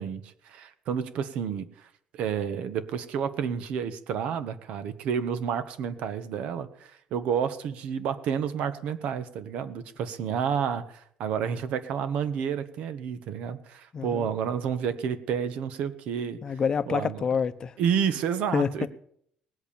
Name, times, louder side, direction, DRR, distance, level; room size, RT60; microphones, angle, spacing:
voice 1, 0.0-1.9 2.1-16.4 16.9-17.2 17.8-18.9, right 7 dB, 70° right, 1.4 m, -30 dB
voice 2, 13.9-14.3 16.4-17.8 18.5-18.9, left 6 dB, 35° left, 0.8 m, -27 dB
18.5 x 8.2 x 8.7 m
cardioid pair, 130°, 2 cm